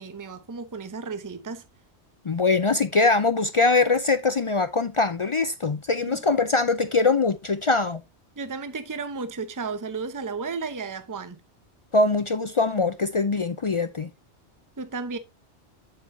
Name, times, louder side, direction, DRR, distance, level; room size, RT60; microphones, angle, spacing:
voice 1, 0.0-1.6 8.4-11.4 14.8-15.2, right 4 dB, 20° right, 0.7 m, -33 dB
voice 2, 2.2-8.0 11.9-14.1, left 3 dB, 50° left, 0.4 m, -22 dB
8.4 x 7.6 x 2.7 m
omnidirectional pair, 1.2 m